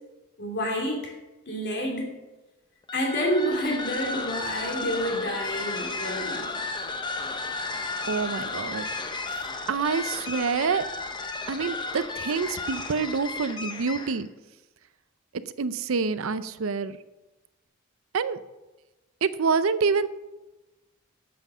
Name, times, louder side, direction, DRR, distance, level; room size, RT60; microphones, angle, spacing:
voice 1, 0.4-1.1 1.5-2.1 2.9-6.5, equal, 55° left, 0 dB, 2.9 m, -28 dB
sound 1, 2.8-14.3, left 3 dB, 20° left, 0.8 m, -33 dB
voice 2, 8.1-8.9 9.7-10.8 11.5-14.3 15.6-17.0 18.1-18.4 19.2-20.1, right 5 dB, 75° right, 14 dB, 0.5 m, -27 dB
9.2 x 7.8 x 6.2 m, 1.1 s
head